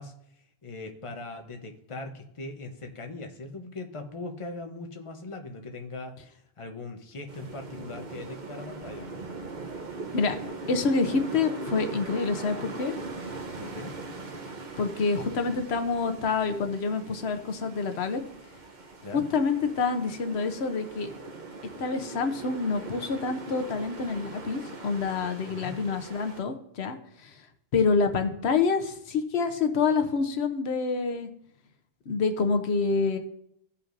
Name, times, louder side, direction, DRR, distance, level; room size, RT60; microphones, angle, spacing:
voice 1, 0.0-6.2 6.6-9.3 13.6-13.9 19.0-19.2 25.5-25.8, left 2 dB, 30° left, 4 dB, 0.9 m, -40 dB
sound 1, 7.3-26.4, right 3 dB, 50° right, 1.0 m, -41 dB
voice 2, 10.7-13.0 14.8-18.2 19.3-21.1 21.8-27.3 27.7-31.3 32.1-33.2, left 4 dB, 85° left, 7 dB, 1.1 m, -27 dB
16.0 x 5.6 x 2.6 m, 0.73 s
omnidirectional pair, 1.1 m